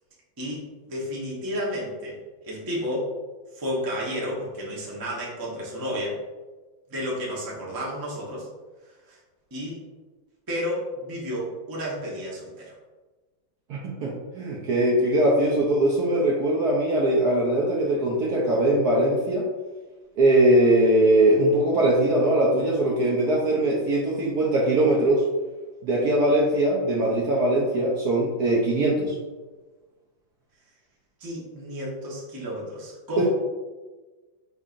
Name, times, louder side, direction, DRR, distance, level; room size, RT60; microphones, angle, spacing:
voice 1, 0.4-3.1 3.5-6.2 6.9-8.5 9.1-9.2 9.5-9.8 10.5-12.7 31.2-33.3, equal, 20° right, -5 dB, 0.5 m, -31 dB
voice 2, 13.7-19.4 20.2-25.2 25.8-29.1, right 1 dB, 65° right, -3 dB, 1.0 m, -21 dB
5.3 x 3.7 x 2.5 m, 1.3 s
omnidirectional pair, 2.2 m